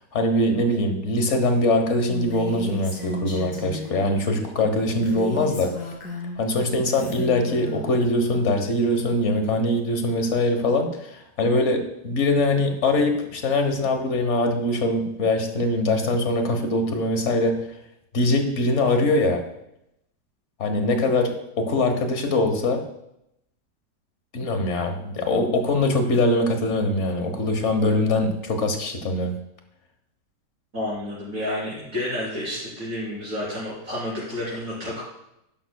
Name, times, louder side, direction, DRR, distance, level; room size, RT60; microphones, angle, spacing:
voice 1, 0.1-5.7 6.4-17.7 18.1-19.4 20.6-22.8 24.3-29.4, left 1 dB, 45° left, 6 dB, 1.4 m, -22 dB
Female speech woman speaking, 2.1-4.0 5.0-6.4 6.9-7.9, left 1 dB, 85° left, 3.1 m, -33 dB
voice 2, 30.7-35.0, left 1 dB, 55° right, -9 dB, 4.3 m, -30 dB
11.5 x 11.0 x 2.3 m, 0.83 s
omnidirectional pair, 1.8 m